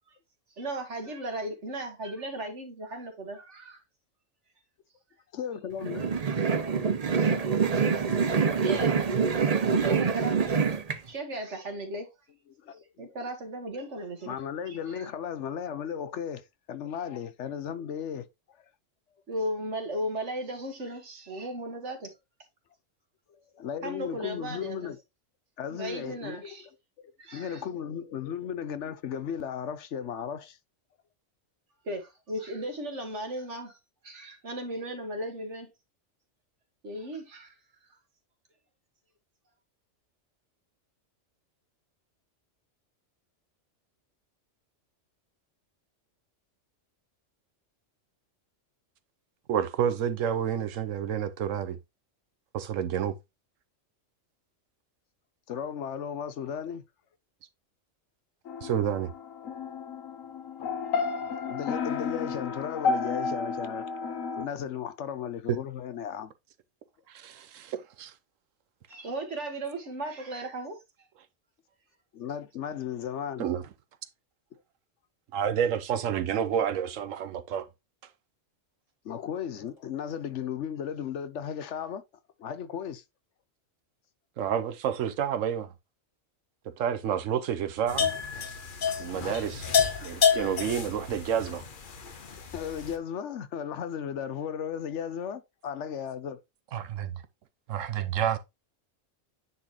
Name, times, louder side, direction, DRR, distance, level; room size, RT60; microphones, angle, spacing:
voice 1, 0.6-3.8 6.0-6.1 7.2-7.7 8.5-9.0 9.4-10.6 11.0-12.1 13.0-14.4 14.7-15.1 19.3-22.1 23.8-24.9 25.7-26.7 27.2-27.6 31.8-33.8 34.0-35.7 36.8-37.5 68.9-70.8, right 1 dB, 65° right, 2.0 m, -36 dB
voice 2, 5.3-6.2 12.6-13.1 14.3-18.3 23.3-25.0 25.6-26.6 27.3-30.6 55.5-56.8 61.5-66.3 72.1-73.5 79.0-82.0 82.4-83.0 92.5-96.4, left 8 dB, 65° left, 1.0 m, -35 dB
sound 1, 5.8-11.0, right 5 dB, 40° right, 0.7 m, -25 dB
voice 3, 49.5-51.8 52.5-53.2 58.6-59.1 65.5-65.6 67.1-68.1 73.4-73.6 75.3-77.7 84.4-85.7 86.7-88.1 89.0-89.7 90.0-91.6 96.7-97.2 97.7-98.4, right 8 dB, 80° right, 1.1 m, -29 dB
sound 2, 58.5-64.5, left 5 dB, 90° left, 1.3 m, -32 dB
sound 3, 87.9-93.0, left 7 dB, 45° left, 1.0 m, -29 dB
9.6 x 4.1 x 3.0 m
omnidirectional pair, 1.3 m